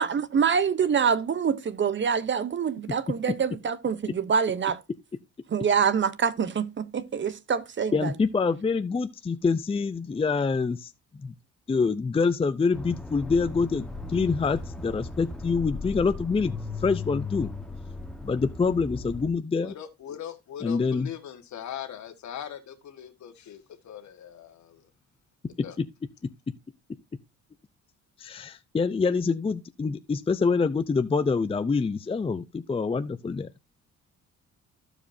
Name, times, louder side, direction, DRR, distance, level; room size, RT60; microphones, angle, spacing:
voice 1, 0.0-4.8 5.5-8.1, right 6 dB, 40° right, 0.7 m, -25 dB
voice 2, 7.9-11.3 11.7-17.5 18.2-19.7 20.6-21.1 25.8-25.9 28.2-33.5, left 4 dB, 20° left, 0.5 m, -26 dB
Accelerating revving vroom, 12.7-19.3, left 3 dB, ahead, 1.1 m, -37 dB
voice 3, 19.6-24.9 25.6-25.8, left 10 dB, 70° left, 1.5 m, -40 dB
14.5 x 5.0 x 2.6 m
cardioid pair, 90°, 30 cm